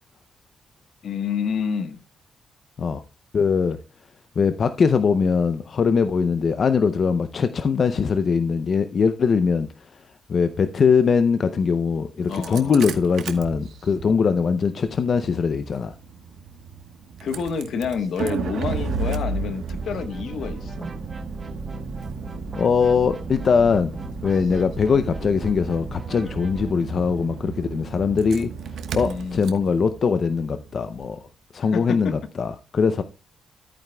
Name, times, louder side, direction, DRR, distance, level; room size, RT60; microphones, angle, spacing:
voice 1, 1.0-2.0 12.3-12.8 17.2-20.9 29.0-29.5 31.7-32.1, left 6 dB, 70° left, 1.2 m, -28 dB
voice 2, 3.3-3.8 4.4-10.0 10.3-15.9 22.5-24.0 24.2-28.5 28.9-31.2 31.5-33.0, left 5 dB, 45° left, 0.5 m, -21 dB
Engine starting, 12.2-31.2, right 5 dB, 80° right, 1.1 m, -34 dB
sound 1, 19.8-26.7, right 2 dB, 25° right, 1.1 m, -37 dB
14.0 x 9.0 x 2.2 m
cardioid pair, 140°, 0 cm